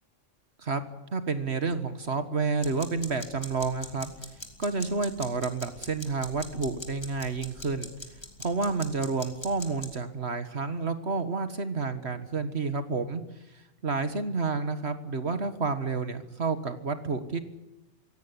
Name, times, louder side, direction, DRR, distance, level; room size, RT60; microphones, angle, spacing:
voice 1, 1.1-4.1 4.6-7.9 8.4-13.2 13.8-17.4, right 4 dB, 55° right, 10 dB, 1.8 m, -30 dB
sound 1, 2.6-10.0, left 1 dB, 20° left, 3.3 m, -42 dB
24.5 x 17.0 x 9.8 m, 0.97 s
omnidirectional pair, 1.3 m